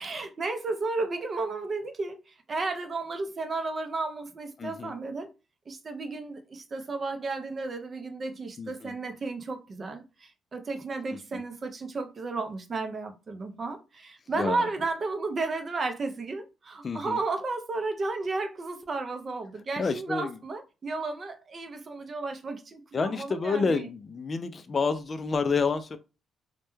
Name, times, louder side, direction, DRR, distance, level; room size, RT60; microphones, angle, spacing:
voice 1, 0.0-5.3 5.7-23.9, right 3 dB, 40° right, 0.5 m, -33 dB
voice 2, 4.6-4.9 8.6-8.9 11.3-11.4 14.4-14.7 16.8-17.2 19.8-20.4 22.9-26.0, left 4 dB, 40° left, 0.3 m, -29 dB
2.2 x 2.1 x 3.0 m
cardioid pair, 90°, 0 cm